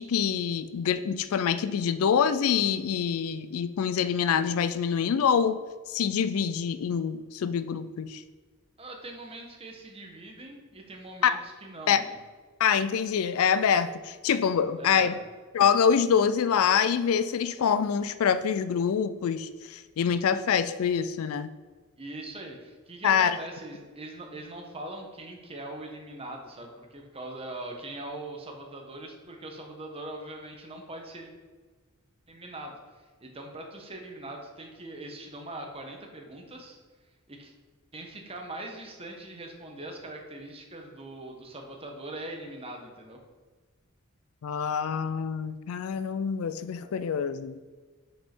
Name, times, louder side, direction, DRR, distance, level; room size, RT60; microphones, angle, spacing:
voice 1, 0.0-5.6 5.9-8.2 11.2-11.4 11.9-12.0 12.6-15.2 15.5-21.5 23.0-23.4 44.4-47.6, left 7 dB, 70° left, 13 dB, 0.4 m, -25 dB
voice 2, 8.8-12.2 14.8-15.1 22.0-31.3 32.3-36.8 37.3-37.5 37.9-43.2, right 1 dB, 25° right, 2 dB, 1.0 m, -41 dB
5.5 x 5.4 x 4.4 m, 1.4 s
head